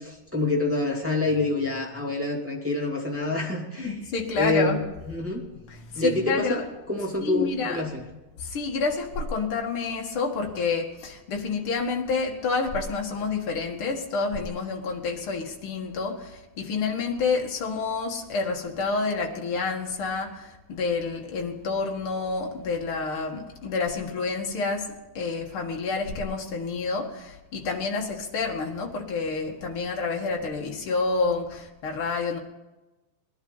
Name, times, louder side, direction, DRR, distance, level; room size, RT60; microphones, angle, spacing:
voice 1, 0.0-3.9 4.4-4.8 5.1-5.4 5.9-6.6 6.9-8.0, left 2 dB, 5° right, -4 dB, 1.9 m, -26 dB
voice 2, 3.8-4.8 5.7-6.7 7.2-7.8 8.4-32.4, left 4 dB, 45° left, 1 dB, 2.2 m, -29 dB
21.0 x 11.5 x 4.0 m, 1.1 s
omnidirectional pair, 3.9 m